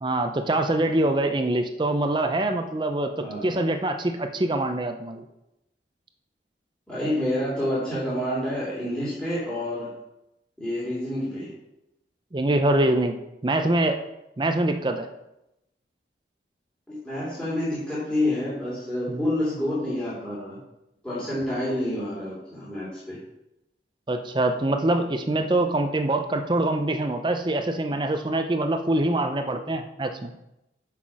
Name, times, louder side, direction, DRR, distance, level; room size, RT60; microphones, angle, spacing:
voice 1, 0.0-5.3 12.3-13.2 13.4-14.0 14.4-15.1 19.1-19.2 19.6-19.7 24.1-30.3, right 1 dB, 25° right, 6 dB, 0.5 m, -24 dB
voice 2, 3.2-3.5 6.9-9.9 10.6-11.5 16.9-20.6 21.0-23.2, left 1 dB, 5° left, -9 dB, 2.4 m, -28 dB
6.1 x 5.8 x 4.8 m, 0.88 s
head